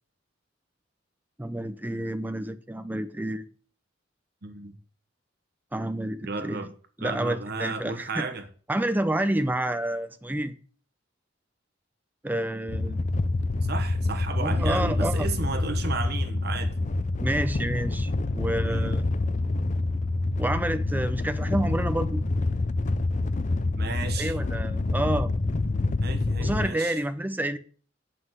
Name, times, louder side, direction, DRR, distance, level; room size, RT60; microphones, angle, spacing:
voice 1, 1.4-3.5 5.7-6.7 7.0-8.3 8.7-10.5 12.2-13.0 14.4-15.3 17.2-18.1 18.4-19.4 20.4-22.2 24.2-25.3 26.4-27.6, right 1 dB, 10° right, 0.6 m, -29 dB
voice 2, 4.4-4.8 6.2-6.7 7.0-8.4 13.6-16.7 18.6-18.9 23.8-24.3 26.0-27.0, right 4 dB, 55° right, 1.3 m, -34 dB
sound 1, 12.7-26.7, left 2 dB, 40° left, 0.5 m, -27 dB
7.8 x 5.9 x 7.8 m
head